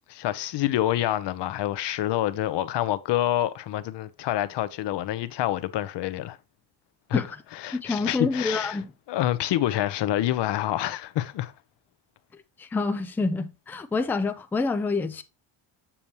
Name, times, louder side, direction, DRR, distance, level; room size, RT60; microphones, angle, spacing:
voice 1, 0.1-6.4 7.1-7.2 7.5-8.8 9.1-11.5, left 13 dB, 55° left, 0.8 m, -27 dB
voice 2, 7.7-8.9 12.6-15.2, left 3 dB, 5° left, 0.3 m, -27 dB
7.1 x 6.8 x 2.9 m
cardioid pair, 140°, 50 cm